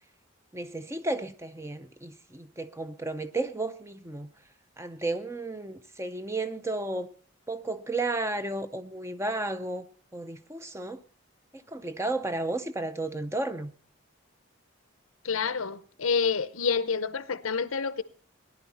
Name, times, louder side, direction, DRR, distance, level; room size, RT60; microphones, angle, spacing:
voice 1, 0.5-4.3 4.8-7.1 7.5-9.9 10.1-11.0 11.5-13.7, right 2 dB, 15° right, 0.5 m, -33 dB
voice 2, 15.2-18.0, left 5 dB, 85° left, 0.7 m, -28 dB
18.0 x 11.0 x 4.1 m
head